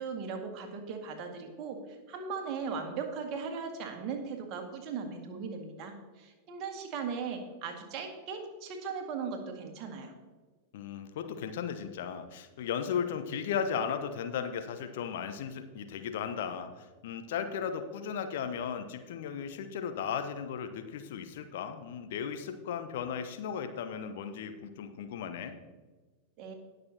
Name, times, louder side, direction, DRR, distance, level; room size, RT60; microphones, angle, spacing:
voice 1, 0.0-1.8 2.1-10.1 26.4-26.5, right 5 dB, 40° right, 3 dB, 1.9 m, -38 dB
voice 2, 10.7-25.6, left 7 dB, 55° left, 8 dB, 0.9 m, -36 dB
19.5 x 6.6 x 2.8 m, 1.3 s
figure-of-eight pair, 90°, 0 cm